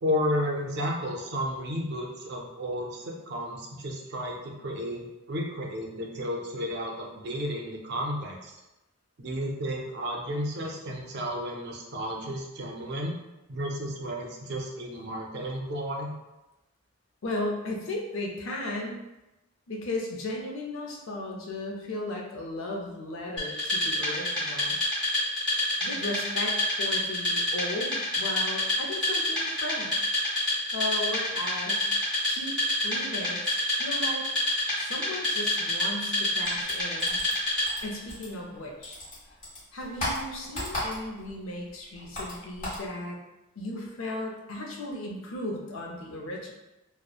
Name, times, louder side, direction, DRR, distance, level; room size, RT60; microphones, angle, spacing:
voice 1, 0.0-8.5 9.2-13.1 13.5-16.1, equal, 50° right, 0 dB, 0.4 m, -32 dB
voice 2, 17.2-19.0 19.7-24.8 25.8-30.1 30.7-31.9 32.2-32.5 32.8-34.3 34.8-37.2 37.8-39.0 39.7-43.2 43.6-46.5, left 1 dB, 65° left, -1 dB, 0.5 m, -36 dB
Wood, 23.4-37.9, left 1 dB, 5° left, 1.2 m, -28 dB
sound 1, 36.4-38.6 38.8-41.3 41.6-42.9, left 1 dB, 35° left, 1.2 m, -35 dB
2.8 x 2.0 x 2.3 m, 0.99 s
head